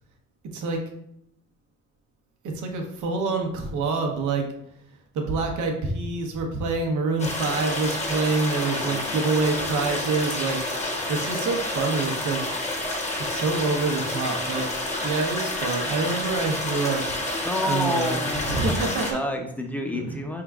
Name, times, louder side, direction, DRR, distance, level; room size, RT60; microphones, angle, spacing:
voice 1, 2.5-4.5 5.1-12.4 13.3-17.0 17.7-18.2 18.5-19.2 19.9-20.2, right 3 dB, 75° right, 2 dB, 0.9 m, -26 dB
sound 1, 7.2-19.1, left 1 dB, 20° left, 1.0 m, -29 dB
voice 2, 8.5-9.2 17.4-18.8 19.1-20.4, left 1 dB, 5° left, 3 dB, 0.6 m, -30 dB
4.7 x 3.7 x 2.3 m, 0.75 s
cardioid pair, 90°, 30 cm